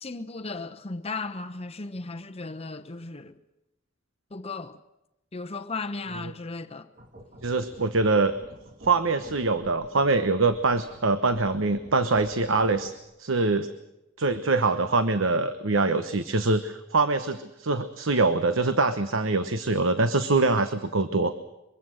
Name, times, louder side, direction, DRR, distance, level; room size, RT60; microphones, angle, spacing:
voice 1, 0.0-3.4 4.3-4.8 5.3-6.9, left 3 dB, 30° left, 0.9 m, -35 dB
sound 1, 6.9-13.1, equal, 40° right, 2.3 m, -49 dB
voice 2, 7.4-8.3 8.8-12.9 13.2-13.7 14.2-21.3, right 3 dB, 75° right, 1.1 m, -24 dB
23.5 x 23.0 x 6.5 m
head